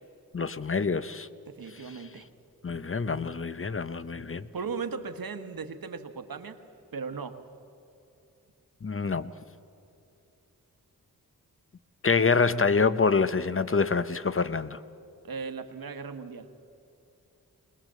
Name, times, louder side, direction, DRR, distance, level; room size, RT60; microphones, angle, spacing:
voice 1, 0.3-1.3 2.6-4.4 8.8-9.3 12.0-14.8, left 4 dB, 35° left, 14 dB, 0.8 m, -26 dB
voice 2, 1.5-2.3 4.5-6.5 6.9-7.4 15.2-16.5, right 5 dB, 75° right, 8 dB, 1.3 m, -37 dB
20.5 x 20.0 x 7.5 m, 2.7 s
cardioid pair, 55°, 36 cm